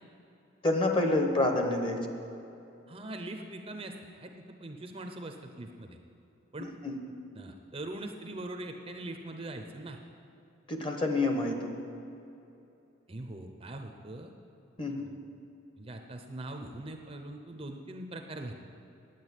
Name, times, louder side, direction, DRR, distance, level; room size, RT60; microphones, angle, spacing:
voice 1, 0.6-2.0 6.8-7.0 10.7-11.7 14.8-15.1, left 2 dB, 25° left, 4 dB, 1.0 m, -28 dB
voice 2, 2.9-6.0 6.5-6.7 7.3-10.0 13.1-14.3 15.0-15.1 15.8-18.5, right 1 dB, 25° right, 4 dB, 0.6 m, -42 dB
9.3 x 9.2 x 8.1 m, 2.8 s
head